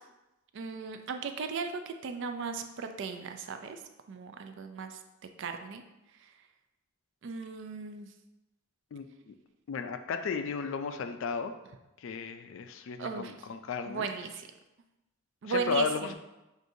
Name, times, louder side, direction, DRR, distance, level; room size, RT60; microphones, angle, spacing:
voice 1, 0.5-3.8 4.1-5.0 5.4-5.8 6.2-6.3 7.2-8.1 13.0-13.3 13.9-14.5 15.4-16.1, right 5 dB, 55° right, 6 dB, 0.3 m, -36 dB
voice 2, 8.9-9.3 9.7-11.5 12.0-14.1 15.4-16.1, left 5 dB, 60° left, 8 dB, 0.3 m, -34 dB
6.1 x 2.6 x 2.6 m, 0.99 s
head